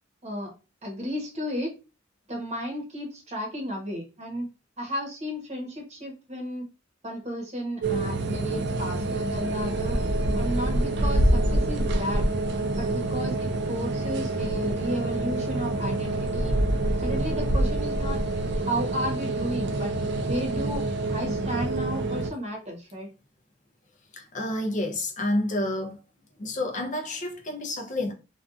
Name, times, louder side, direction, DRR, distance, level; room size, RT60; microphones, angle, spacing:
voice 1, 0.8-1.7 2.3-4.5 4.8-6.6 7.0-10.0 10.3-12.3 12.7-16.6 17.0-18.2 18.6-20.8 21.1-23.1, equal, 35° right, 0.9 m, -33 dB
sound 1, 7.8-22.3, right 1 dB, 65° right, 0.4 m, -26 dB
voice 2, 24.1-26.0 26.4-28.1, left 1 dB, 40° left, 0.5 m, -29 dB
2.6 x 2.3 x 2.3 m
head